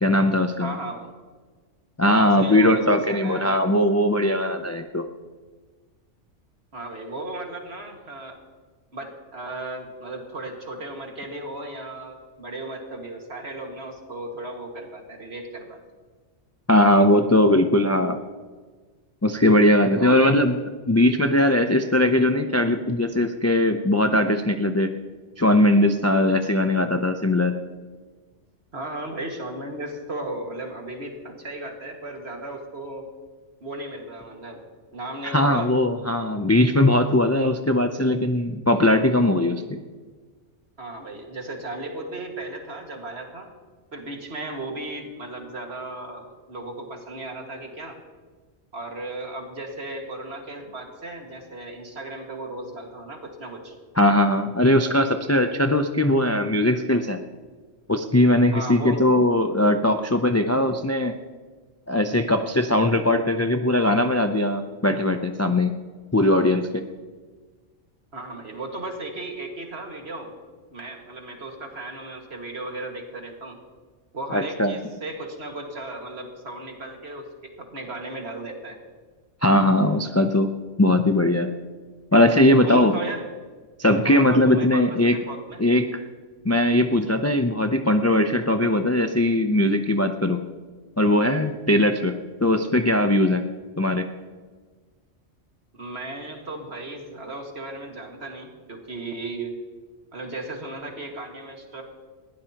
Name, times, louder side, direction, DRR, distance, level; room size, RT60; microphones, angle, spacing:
voice 1, 0.0-0.7 2.0-5.0 16.7-18.2 19.2-20.6 20.9-24.9 25.4-27.5 35.3-39.8 54.0-57.2 57.9-61.1 61.9-65.8 66.1-66.8 74.3-74.7 79.4-80.5 80.8-81.5 82.1-82.9 83.8-85.2 85.6-86.0 86.4-90.4 91.0-92.2 92.4-93.4 93.8-94.0, left 1 dB, 25° left, 6 dB, 0.4 m, -20 dB
voice 2, 0.6-1.1 2.1-3.6 6.7-8.4 8.9-15.8 20.0-20.4 28.7-33.1 33.6-34.6 34.9-35.7 40.8-43.5 43.9-48.0 48.7-53.8 58.5-59.0 68.1-70.4 70.7-73.6 74.1-77.3 77.6-78.8 82.6-83.2 84.0-85.6 95.7-99.5 100.1-101.8, right 2 dB, 55° right, 2 dB, 2.2 m, -35 dB
20.5 x 15.5 x 2.9 m, 1.4 s
omnidirectional pair, 1.3 m